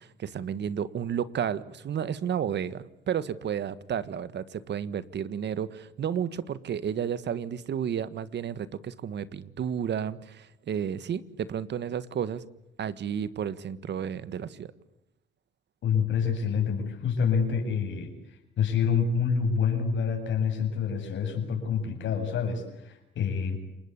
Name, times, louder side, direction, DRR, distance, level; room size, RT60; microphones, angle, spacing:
voice 1, 0.0-12.5 12.8-14.7, right 8 dB, 60° right, 15 dB, 1.7 m, -32 dB
voice 2, 15.8-18.1 18.6-23.6, left 6 dB, 70° left, 4 dB, 8.0 m, -27 dB
29.5 x 20.5 x 8.4 m, 0.85 s
cardioid pair, 90°, 20 cm